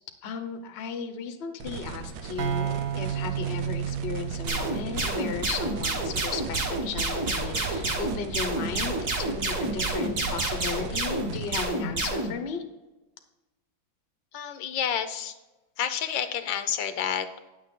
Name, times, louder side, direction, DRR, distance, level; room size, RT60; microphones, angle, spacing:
voice 1, 0.2-12.6, left 6 dB, 50° left, 7 dB, 0.8 m, -35 dB
sound 1, 1.6-11.6, right 6 dB, 85° right, 1.6 m, -39 dB
sound 2, 2.4-6.0, right 9 dB, 60° right, 0.9 m, -32 dB
sound 3, 4.5-12.3, right 2 dB, 45° right, 1.8 m, -29 dB
voice 2, 14.3-15.3 15.8-17.3, left 9 dB, 75° left, 9 dB, 1.4 m, -29 dB
9.6 x 6.7 x 3.6 m, 1.1 s
omnidirectional pair, 2.1 m